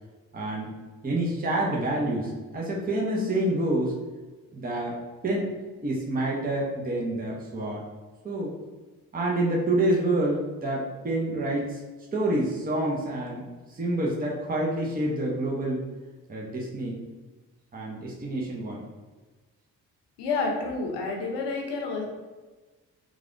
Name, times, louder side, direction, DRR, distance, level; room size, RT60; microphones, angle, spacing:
voice 1, 0.3-0.7 1.0-3.9 4.5-5.0 5.2-5.5 5.8-7.8 8.2-8.5 9.1-11.8 12.1-15.8 16.3-17.0 17.7-18.8, right 1 dB, 20° right, -3 dB, 0.8 m, -27 dB
voice 2, 20.2-22.0, left 3 dB, 75° left, 1 dB, 0.8 m, -29 dB
3.2 x 2.4 x 2.5 m, 1.3 s
hypercardioid pair, 50°, 42 cm